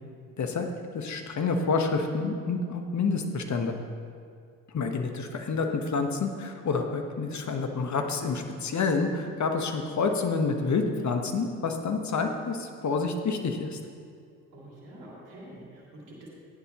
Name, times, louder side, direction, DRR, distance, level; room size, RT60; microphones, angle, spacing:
voice 1, 0.9-3.8 4.7-13.8, left 4 dB, 45° left, 4 dB, 1.4 m, -28 dB
voice 2, 14.5-16.3, right 1 dB, 80° right, -5 dB, 3.1 m, -47 dB
14.0 x 9.9 x 3.1 m, 2.2 s
hypercardioid pair, 50°, 41 cm